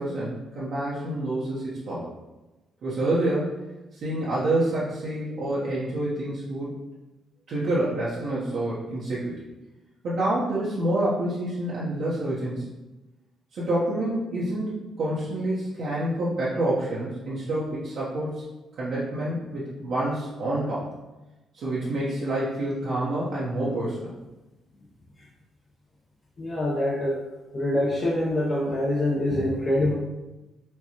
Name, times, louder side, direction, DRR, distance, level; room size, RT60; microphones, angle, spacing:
voice 1, 0.0-2.1 2.8-3.6 3.9-6.7 7.5-9.4 10.0-12.6 13.5-18.4 18.8-20.9 21.5-24.1, right 1 dB, 65° right, -8 dB, 0.8 m, -27 dB
voice 2, 26.4-27.2 27.5-29.9, left 1 dB, 35° left, -5 dB, 0.6 m, -25 dB
4.4 x 2.3 x 2.8 m, 1.1 s
cardioid pair, 90°, 0 cm